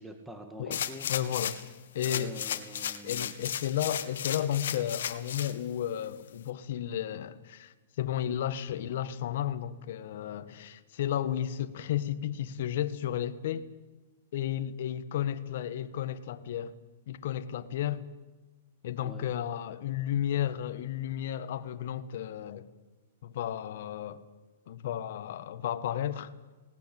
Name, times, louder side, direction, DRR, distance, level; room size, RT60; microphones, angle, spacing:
voice 1, 0.0-1.1 2.0-3.3 19.0-19.3, equal, 5° right, 2.0 m, -45 dB
sound 1, 0.7-1.7 2.0-5.5 6.0-6.1, left 9 dB, 75° left, 1.8 m, -34 dB
voice 2, 1.1-1.6 1.9-2.3 3.0-13.7 14.3-16.7 17.1-18.0 18.8-22.7 23.2-24.2 24.7-26.3, left 10 dB, 60° left, 1.5 m, -33 dB
18.5 x 18.5 x 8.7 m
hypercardioid pair, 150°, 0 cm